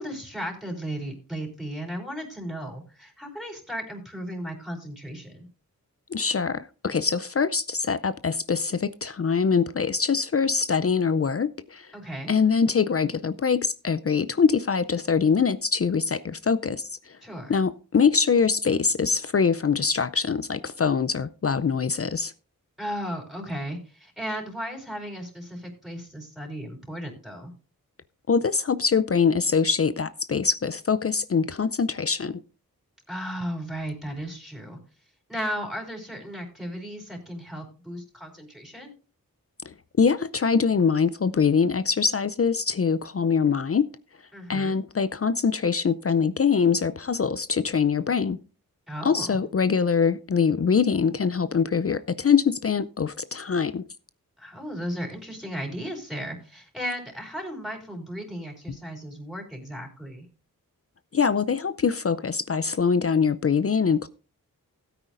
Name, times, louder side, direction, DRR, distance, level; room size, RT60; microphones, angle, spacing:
voice 1, 0.0-5.5 11.9-12.3 17.2-17.6 22.8-27.5 33.1-34.8 35.3-38.9 44.3-44.8 48.9-49.4 54.4-60.3, equal, ahead, 1 dB, 4.3 m, -35 dB
voice 2, 6.1-11.9 12.3-17.2 17.5-22.3 28.3-32.4 40.0-43.9 44.5-48.4 49.0-53.8 61.1-64.1, left 6 dB, 40° left, 15 dB, 0.5 m, -23 dB
16.0 x 9.1 x 2.6 m, 0.34 s
cardioid pair, 45°, 35 cm